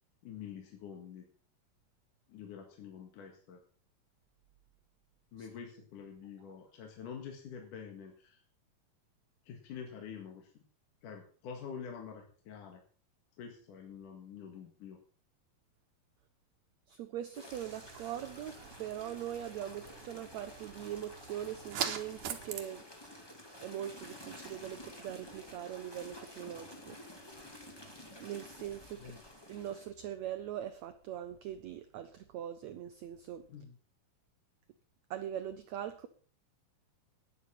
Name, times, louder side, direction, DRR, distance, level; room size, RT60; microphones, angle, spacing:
voice 1, 0.2-1.2 2.3-3.6 5.3-8.4 9.5-10.6 11.0-12.8 13.4-15.0 28.9-29.2 33.5-33.8, left 7 dB, 65° left, 2 dB, 3.1 m, -47 dB
voice 2, 16.9-22.8 23.6-27.0 28.2-29.0 29.5-33.4 35.1-36.1, right 11 dB, 85° right, 10 dB, 1.5 m, -41 dB
sound 1, 17.3-29.9, left 1 dB, 10° left, 1.4 m, -51 dB
sound 2, 17.5-22.6, right 9 dB, 70° right, 2.6 m, -43 dB
12.0 x 10.0 x 5.8 m, 0.43 s
omnidirectional pair, 4.2 m